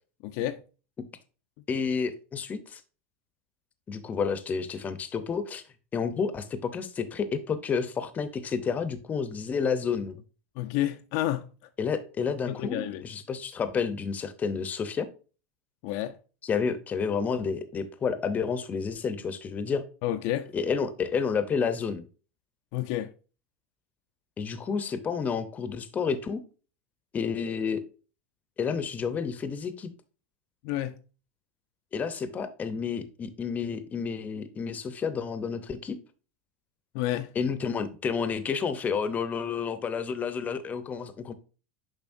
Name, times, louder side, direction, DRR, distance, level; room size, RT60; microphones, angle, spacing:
voice 1, 0.2-0.6 10.6-11.5 12.5-13.0 15.8-16.2 20.0-20.5 22.7-23.1 30.6-31.0 36.9-37.3, left 13 dB, 60° left, 0.4 m, -30 dB
voice 2, 1.7-2.8 3.9-5.6 5.9-10.2 11.8-15.1 16.4-19.8 20.5-22.0 24.4-26.4 27.1-27.8 28.6-29.9 31.9-36.0 37.4-41.3, left 6 dB, 20° left, 0.7 m, -30 dB
7.1 x 5.2 x 2.6 m
supercardioid pair, 140°, 7 cm